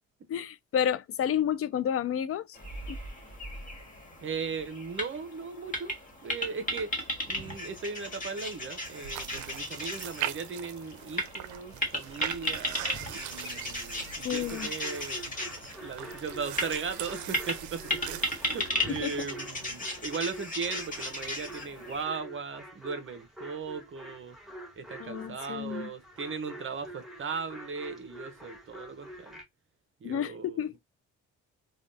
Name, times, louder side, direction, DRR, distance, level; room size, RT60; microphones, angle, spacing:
voice 1, 0.3-2.6 2.9-3.0 14.2-14.7 19.0-19.1 25.0-25.9 30.0-30.7, left 9 dB, 50° left, 0.4 m, -30 dB
sound 1, 2.5-22.0, left 1 dB, 25° left, 1.5 m, -36 dB
voice 2, 4.2-6.0 6.2-6.9 7.3-15.2 15.8-24.4 24.8-29.4 30.0-30.8, right 5 dB, 40° right, 0.7 m, -38 dB
sound 2, 8.8-18.7, right 11 dB, 75° right, 0.5 m, -41 dB
sound 3, 14.4-29.4, right 1 dB, ahead, 1.2 m, -47 dB
3.3 x 2.3 x 2.6 m
cardioid pair, 90°, 30 cm